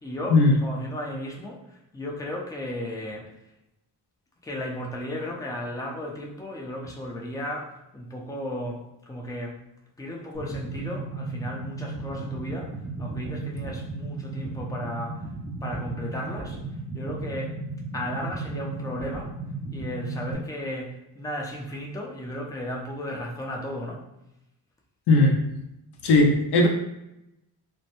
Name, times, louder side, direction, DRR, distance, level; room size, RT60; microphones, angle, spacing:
voice 1, 0.0-3.3 4.4-9.6 10.0-15.2 15.6-16.6 16.9-17.6 17.9-19.3 19.7-24.0, left 1 dB, 10° left, -1 dB, 0.5 m, -35 dB
sound 1, 10.3-20.3, right 3 dB, 60° right, 0.7 m, -35 dB
voice 2, 25.1-25.5 26.0-26.7, left 2 dB, 65° left, 2 dB, 0.5 m, -18 dB
2.2 x 2.1 x 2.9 m, 0.88 s
supercardioid pair, 50°, 44 cm